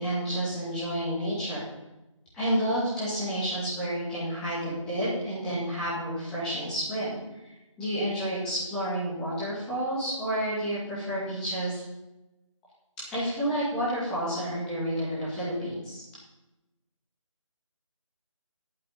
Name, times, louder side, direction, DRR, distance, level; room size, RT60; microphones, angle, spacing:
voice 1, 0.0-1.6 2.3-7.1 7.8-11.8 13.1-16.0, equal, 5° left, -11 dB, 2.1 m, -30 dB
8.7 x 6.8 x 8.5 m, 1.0 s
figure-of-eight pair, 170°, 17 cm